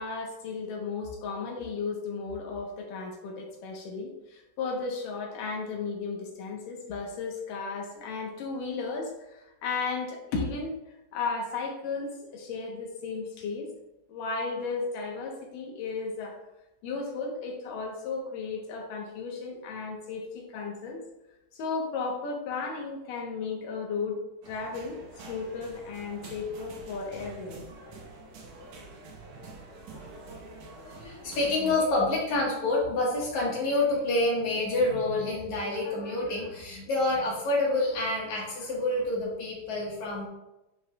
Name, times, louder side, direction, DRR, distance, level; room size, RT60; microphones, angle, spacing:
voice 1, 0.0-10.8 11.1-13.7 14.1-16.3 16.8-21.0 21.5-24.2 24.5-25.0 25.3-27.6, left 4 dB, 80° left, 0 dB, 2.8 m, -34 dB
sound 1, 24.4-31.7, right 2 dB, 70° right, 2.5 m, -46 dB
voice 2, 30.8-40.3, left 2 dB, 65° left, -4 dB, 2.9 m, -28 dB
9.7 x 5.1 x 2.4 m, 0.93 s
omnidirectional pair, 3.8 m